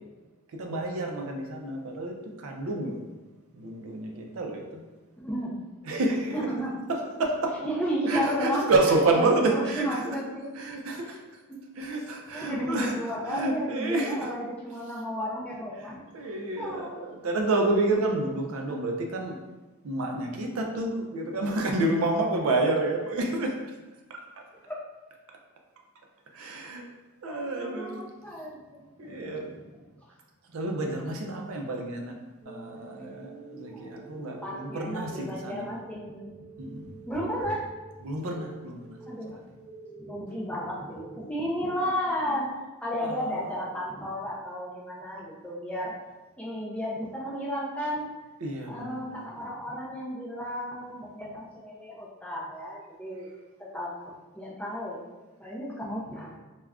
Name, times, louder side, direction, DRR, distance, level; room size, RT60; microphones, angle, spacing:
voice 1, 0.6-3.0 3.5-4.8 5.8-6.5 6.9-7.6 8.1-10.2 10.5-11.2 11.8-14.3 14.7-14.8 15.8-19.4 19.8-23.5 24.1-24.2 26.3-26.8 27.2-28.0 29.0-29.5 30.5-32.2 32.5-35.7 36.6-36.9 38.0-39.4 43.0-43.8 48.4-49.3, right 2 dB, 70° right, 2 dB, 0.4 m, -29 dB
voice 2, 5.2-5.6 6.3-6.8 7.6-8.6 9.1-10.5 11.1-11.2 11.5-11.6 12.3-16.0 16.6-17.0 24.7-24.8 27.3-29.6 33.6-36.4 37.1-37.6 39.1-39.4 40.0-42.4 42.8-45.9 46.4-48.1 48.7-53.3 53.6-55.1 55.4-56.4, equal, 5° left, -5 dB, 0.4 m, -33 dB
sound 1, 32.4-42.4, right 2 dB, 30° right, 0.7 m, -47 dB
2.3 x 2.1 x 3.4 m, 1.2 s
head